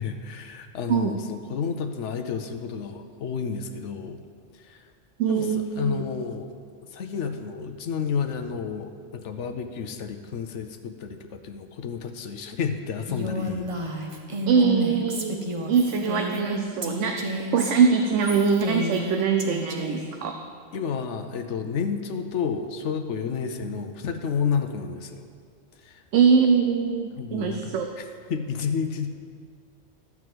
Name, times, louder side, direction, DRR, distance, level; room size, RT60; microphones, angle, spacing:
voice 1, 0.0-4.2 4.5-4.9 5.3-6.5 6.8-13.7 20.7-25.3 25.8-26.0 27.2-29.1, left 6 dB, 80° left, 7 dB, 1.0 m, -31 dB
voice 2, 5.2-6.0 14.5-17.2 17.5-20.4 26.1-27.9, right 6 dB, 90° right, 4 dB, 1.0 m, -23 dB
Female speech woman speaking, 13.1-20.1, equal, 30° right, 0.9 m, -31 dB
12.0 x 4.7 x 7.7 m, 2.1 s
omnidirectional pair, 1.2 m